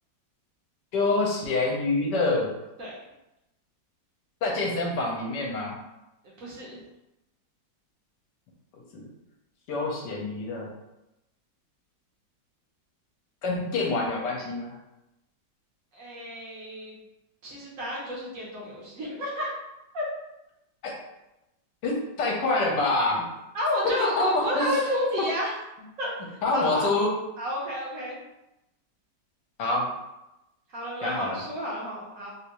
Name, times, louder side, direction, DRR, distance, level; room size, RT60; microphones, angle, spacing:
voice 1, 0.9-2.5 4.4-5.8 8.9-9.1 9.7-10.7 13.4-14.7 20.8-20.9 21.8-23.3 24.0-24.8 25.2-25.3 26.4-27.1 29.6-29.9 31.0-31.4, left 2 dB, 70° left, -1 dB, 1.3 m, -26 dB
voice 2, 6.4-6.8 15.9-17.0 17.4-19.5 19.9-20.1 23.5-25.6 26.0-26.1 26.5-26.9 27.4-28.2 30.7-32.3, equal, 60° right, -4 dB, 1.0 m, -30 dB
3.5 x 2.6 x 2.9 m, 0.92 s
omnidirectional pair, 2.0 m